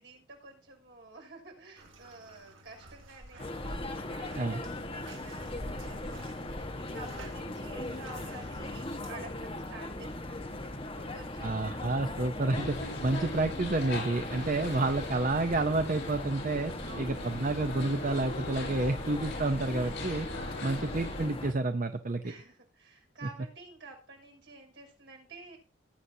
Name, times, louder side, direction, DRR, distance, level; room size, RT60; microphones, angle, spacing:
voice 1, 0.0-10.6 10.9-11.8 14.3-14.8 16.8-17.5 19.3-19.8 20.8-21.1 22.2-25.6, right 3 dB, 65° right, 1 dB, 5.9 m, -50 dB
Bathtub (filling or washing), 1.8-9.1, right 1 dB, 80° right, 2.9 m, -48 dB
sound 1, 3.4-21.5, left 1 dB, 30° left, 1.4 m, -39 dB
voice 2, 11.4-16.7 17.0-20.3 20.6-22.3, right 2 dB, 40° right, 8 dB, 0.7 m, -30 dB
sound 2, 12.5-21.3, left 2 dB, 65° left, 7.7 m, -40 dB
19.0 x 9.5 x 2.8 m, 0.35 s
head